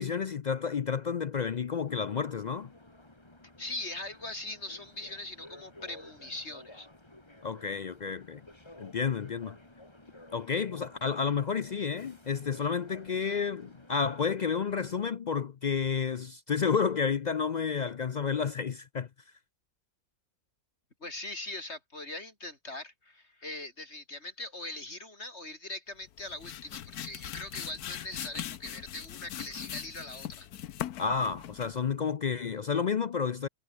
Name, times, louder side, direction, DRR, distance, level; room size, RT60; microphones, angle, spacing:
voice 1, 0.0-2.7 7.4-8.4 8.8-9.6 10.3-19.1 31.0-33.5, left 6 dB, 70° left, 0.4 m, -30 dB
sound 1, 1.9-15.1, left 1 dB, 20° left, 2.7 m, -53 dB
voice 2, 3.6-6.9 21.0-30.5, left 2 dB, 45° left, 5.0 m, -41 dB
sound 2, 26.0-31.9, left 11 dB, 90° left, 1.4 m, -41 dB
omnidirectional pair, 1.5 m